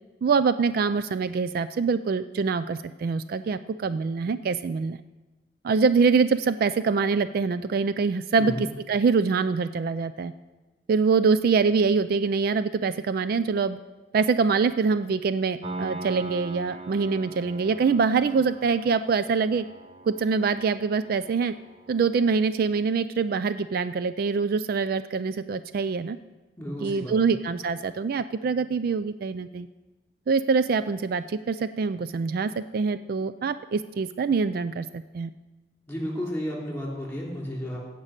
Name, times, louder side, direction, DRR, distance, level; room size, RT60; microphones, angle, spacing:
voice 1, 0.2-5.0 5.6-10.3 10.9-13.8 14.1-19.7 20.0-21.5 21.9-26.2 26.8-29.7 30.3-35.3, right 5 dB, 55° right, 13 dB, 0.3 m, -24 dB
Piano, 15.6-22.4, right 2 dB, 30° right, 0.7 m, -41 dB
voice 2, 26.6-27.1 35.9-37.8, equal, 10° left, -3 dB, 3.2 m, -32 dB
16.0 x 5.4 x 6.5 m, 1.1 s
head